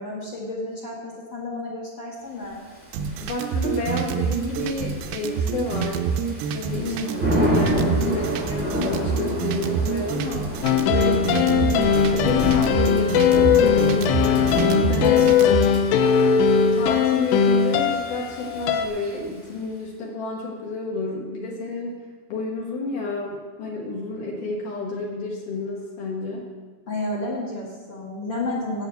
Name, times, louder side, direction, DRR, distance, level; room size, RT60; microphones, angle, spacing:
voice 1, 0.0-2.6 6.7-7.5 15.0-15.7 26.9-28.9, left 2 dB, 45° left, -4 dB, 1.7 m, -31 dB
Thunder / Rain, 2.9-19.5, equal, 5° right, 1.2 m, -30 dB
sound 1, 2.9-15.8, right 6 dB, 80° right, 2.4 m, -27 dB
voice 2, 3.2-6.1 6.5-6.9 7.3-10.6 10.9-15.2 16.6-22.0 22.3-26.5, left 2 dB, 60° left, -2 dB, 2.7 m, -30 dB
sound 2, 10.6-18.9, left 7 dB, 85° left, 2.8 m, -19 dB
9.1 x 8.3 x 7.9 m, 1.4 s
omnidirectional pair, 4.8 m